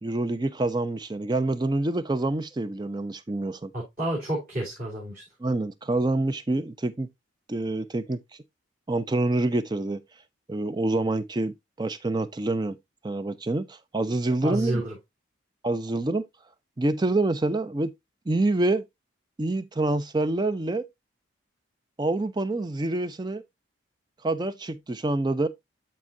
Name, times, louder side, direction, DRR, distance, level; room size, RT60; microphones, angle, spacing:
voice 1, 0.0-3.7 5.4-7.1 7.5-8.2 8.9-10.0 10.5-12.8 13.0-14.8 15.6-16.3 16.8-17.9 18.3-18.8 19.4-20.9 22.0-23.4 24.2-25.5, right 2 dB, 20° right, 0.4 m, -26 dB
voice 2, 3.7-5.2 14.4-15.0, right 1 dB, 40° right, 3.4 m, -30 dB
12.0 x 4.4 x 2.6 m
head